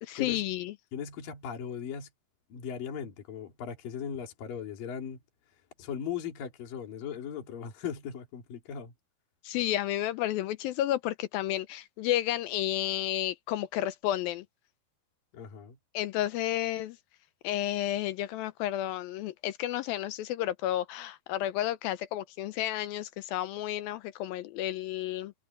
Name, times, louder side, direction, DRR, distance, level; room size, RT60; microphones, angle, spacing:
voice 1, 0.0-0.7 9.4-14.5 15.9-17.0 17.4-25.3, left 13 dB, 80° left, 2.2 m, -31 dB
voice 2, 0.9-2.1 2.5-5.2 5.8-8.9 15.3-15.8, left 7 dB, 60° left, 4.6 m, -38 dB
omnidirectional pair, 4.7 m